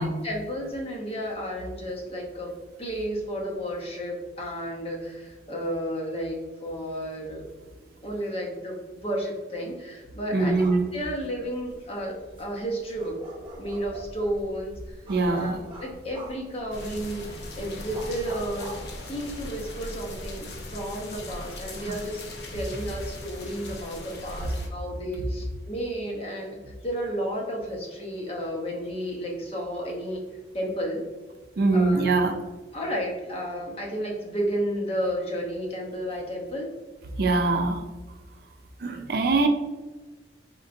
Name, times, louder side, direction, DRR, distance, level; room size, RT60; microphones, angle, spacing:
voice 1, 0.0-2.5 2.8-7.5 8.0-13.1 13.6-18.7 19.0-22.2 22.5-30.2 30.5-31.0 31.7-32.2 32.7-36.7, equal, 35° left, -1 dB, 0.8 m, -32 dB
voice 2, 10.3-10.9 15.1-15.6 31.6-32.4 37.1-37.8 38.8-39.5, right 3 dB, 60° right, 5 dB, 0.5 m, -23 dB
sound 1, 10.5-19.6, right 1 dB, 30° right, 1.1 m, -45 dB
sound 2, 16.7-24.7, left 1 dB, 70° left, 0.7 m, -39 dB
4.4 x 3.8 x 2.6 m, 1.2 s
head